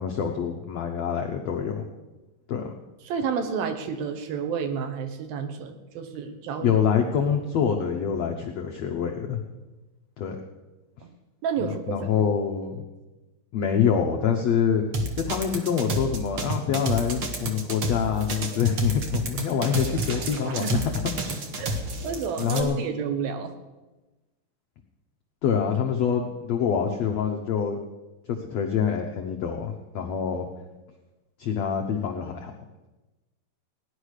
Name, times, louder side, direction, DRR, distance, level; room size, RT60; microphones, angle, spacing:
voice 1, 0.0-1.8 2.5-2.7 6.6-9.4 10.2-10.4 11.6-12.9 13.5-14.8 15.3-21.0 22.4-22.8 25.4-27.8 28.3-30.4 31.4-32.5, left 7 dB, 85° left, 2 dB, 1.5 m, -26 dB
voice 2, 3.1-6.8 11.0-11.2 11.4-12.3 20.5-20.8 21.6-21.8 22.0-23.5, right 6 dB, 70° right, 8 dB, 2.8 m, -30 dB
sound 1, 14.9-22.6, right 2 dB, 55° right, 1.7 m, -29 dB
17.5 x 10.5 x 6.5 m, 1.1 s
omnidirectional pair, 4.6 m